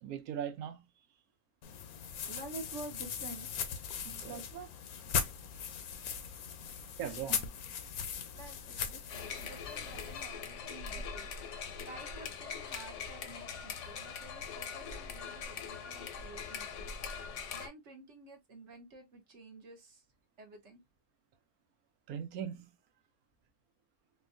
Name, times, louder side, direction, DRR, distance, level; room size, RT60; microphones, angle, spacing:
voice 1, 0.0-0.9 4.0-4.4 7.0-7.4 22.1-22.7, right 9 dB, 80° right, 1.1 m, -40 dB
sound 1, 1.6-10.2, left 7 dB, 80° left, 1.1 m, -39 dB
voice 2, 2.3-3.8 4.2-4.7 6.7-6.9 8.3-16.9 17.2-20.0 20.4-20.8, right 3 dB, 55° right, 1.1 m, -50 dB
sound 2, 9.1-17.7, left 6 dB, 60° left, 0.9 m, -42 dB
4.4 x 2.2 x 2.4 m
omnidirectional pair, 1.6 m